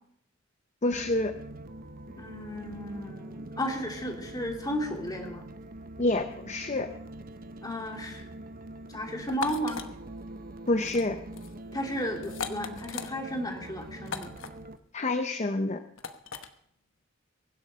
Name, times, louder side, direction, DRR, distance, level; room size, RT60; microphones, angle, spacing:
voice 1, 0.8-1.3 6.0-6.9 10.7-11.2 14.9-15.8, left 2 dB, 35° left, 8 dB, 0.7 m, -27 dB
sound 1, 0.9-14.8, right 1 dB, 45° right, 0.9 m, -44 dB
voice 2, 2.0-5.5 7.6-8.3 8.9-9.8 11.7-14.3, equal, 20° left, 2 dB, 2.8 m, -34 dB
sound 2, 9.3-9.9 10.8-11.1 11.3-11.5 12.2-13.1 14.1-14.5 16.0-16.5, left 6 dB, 85° left, 1.1 m, -37 dB
23.0 x 7.9 x 5.5 m, 0.69 s
head